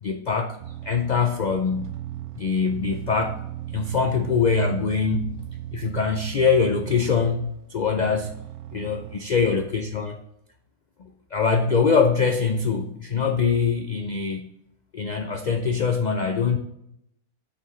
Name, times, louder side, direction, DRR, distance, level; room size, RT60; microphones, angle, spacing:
voice 1, 0.0-0.6 0.8-1.9 2.4-3.4 3.7-5.3 5.7-8.3 8.7-10.2 11.0-14.5 14.9-16.6, left 5 dB, 65° left, 6 dB, 0.4 m, -23 dB
sound 1, 0.6-9.3, right 12 dB, 65° right, 0.9 m, -37 dB
7.8 x 6.0 x 3.1 m, 0.78 s
omnidirectional pair, 1.5 m